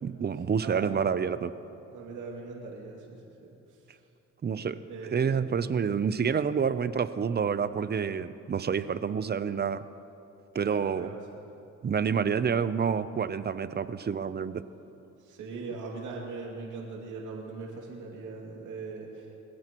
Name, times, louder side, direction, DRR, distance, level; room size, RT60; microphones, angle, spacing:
voice 1, 0.0-1.5 4.4-4.8 5.1-9.8 10.5-11.1 11.8-14.6, right 6 dB, 35° right, 13 dB, 0.6 m, -28 dB
voice 2, 0.6-0.9 1.9-3.8 4.9-5.4 10.6-11.2 15.2-19.3, right 4 dB, 85° right, -2 dB, 2.5 m, -40 dB
23.5 x 16.0 x 3.0 m, 2.9 s
cardioid pair, 90°, 30 cm